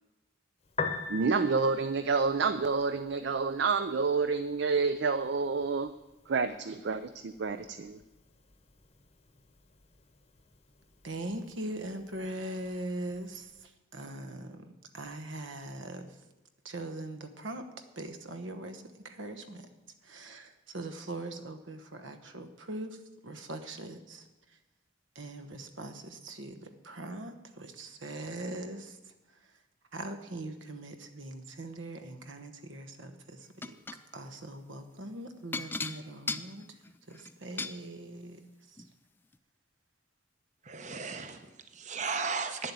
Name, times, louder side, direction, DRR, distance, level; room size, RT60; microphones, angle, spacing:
Piano, 0.6-13.7, left 4 dB, 30° left, 0.9 m, -45 dB
voice 1, 1.1-5.9 6.3-8.0, right 4 dB, 60° right, 12 dB, 0.4 m, -29 dB
voice 2, 11.0-16.3 16.6-17.7 17.9-19.7 20.0-24.6 25.1-29.7 29.9-33.7 34.1-38.9, right 1 dB, 75° right, 8 dB, 1.1 m, -41 dB
sound 1, 33.6-34.0 35.5-37.8 38.8-38.9 39.3-39.4, left 3 dB, 10° left, 0.3 m, -37 dB
voice 3, 40.6-42.7, right 5 dB, 40° right, 8 dB, 0.8 m, -35 dB
9.9 x 7.6 x 8.3 m, 1.0 s
head